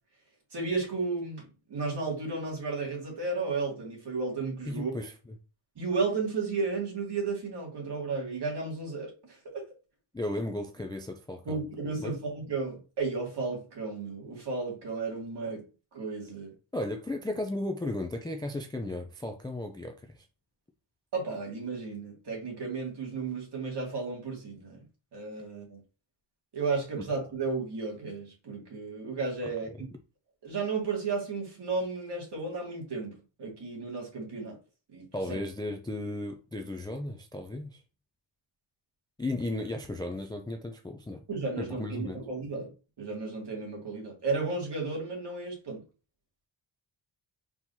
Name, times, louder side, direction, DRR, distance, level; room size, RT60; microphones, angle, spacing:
voice 1, 0.5-4.9 5.8-9.6 11.5-15.6 15.9-16.5 21.1-25.8 26.5-29.9 30.4-34.6 34.9-35.4 41.3-45.8, right 4 dB, 55° right, 2.2 m, -33 dB
voice 2, 4.7-5.4 10.1-11.6 12.0-12.2 16.7-20.3 27.0-27.1 29.4-29.5 35.1-37.8 39.2-41.2 41.6-42.2, left 1 dB, 10° left, 0.3 m, -35 dB
4.6 x 3.7 x 2.7 m
wide cardioid pair, 165°, 48 cm